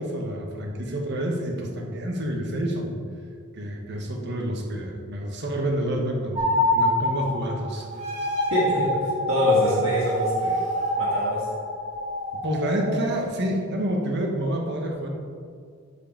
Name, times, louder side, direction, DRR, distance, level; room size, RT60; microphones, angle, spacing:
voice 1, 0.0-2.9 3.5-7.9 12.4-15.1, right 1 dB, 50° right, 1 dB, 1.3 m, -28 dB
sound 1, 6.3-13.2, equal, 30° right, 2.0 m, -26 dB
voice 2, 8.5-8.9 9.3-10.7 11.0-11.5, left 1 dB, 65° right, -9 dB, 2.3 m, -24 dB
12.5 x 4.9 x 4.5 m, 2.2 s
head